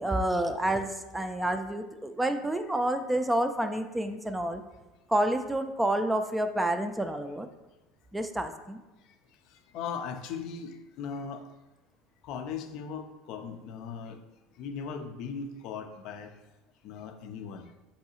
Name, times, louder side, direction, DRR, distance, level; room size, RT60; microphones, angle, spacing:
voice 1, 0.0-4.6 5.1-7.5 8.1-8.8, right 1 dB, 10° right, 8 dB, 0.3 m, -29 dB
voice 2, 9.7-11.5 12.2-14.2 14.6-16.3 16.8-17.7, left 6 dB, 60° left, 6 dB, 0.4 m, -38 dB
4.6 x 2.6 x 2.7 m, 1.1 s
hypercardioid pair, 80°, 0 cm